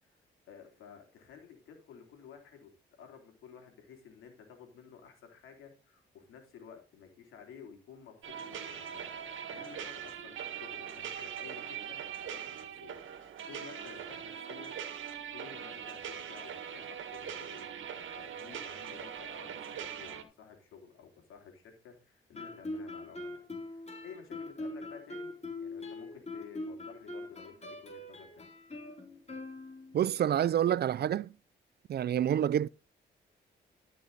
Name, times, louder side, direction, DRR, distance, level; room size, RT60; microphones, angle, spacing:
voice 1, 0.0-17.8 18.1-23.4 23.6-28.5, left 7 dB, 85° left, 3.4 m, -53 dB
sound 1, 8.2-20.2, right 8 dB, 75° right, 1.8 m, -42 dB
Guitar, 22.3-30.1, left 2 dB, 30° left, 4.0 m, -42 dB
voice 2, 29.9-31.3 31.9-32.7, right 10 dB, 50° right, 0.4 m, -28 dB
13.5 x 6.0 x 4.0 m
supercardioid pair, 60°, 21 cm